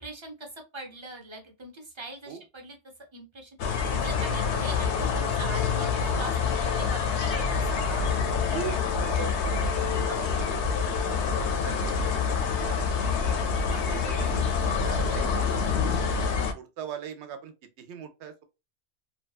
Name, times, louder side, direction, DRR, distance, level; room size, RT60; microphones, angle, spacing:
voice 1, 0.0-2.8 3.1-8.4 13.7-14.0, right 2 dB, 35° right, 0.5 m, -42 dB
sound 1, 3.6-16.5, left 5 dB, 75° left, 0.9 m, -26 dB
voice 2, 8.5-10.6 11.1-13.0 13.9-15.5 16.3-18.4, right 8 dB, 75° right, 0.9 m, -41 dB
2.7 x 2.3 x 2.3 m
omnidirectional pair, 1.2 m